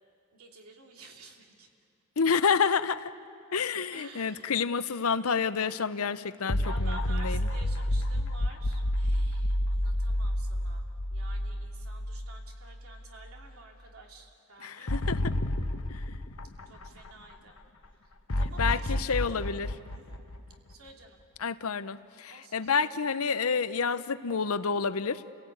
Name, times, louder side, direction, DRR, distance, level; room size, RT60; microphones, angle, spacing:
voice 1, 0.3-1.7 3.5-3.7 3.9-4.6 6.6-15.1 16.7-17.6 18.0-18.1 18.4-19.4 19.9-20.2 20.7-21.2 22.3-22.6, right 4 dB, 85° right, 1 dB, 2.8 m, -51 dB
voice 2, 2.2-3.1 3.5-7.5 14.6-15.3 15.9-16.0 18.6-19.7 21.4-25.2, left 5 dB, 85° left, 14 dB, 0.7 m, -29 dB
sound 1, 6.5-12.8 13.2-13.3 14.9-17.3 18.3-21.1, left 1 dB, 70° left, 1.1 m, -30 dB
30.0 x 17.5 x 8.7 m, 2.6 s
head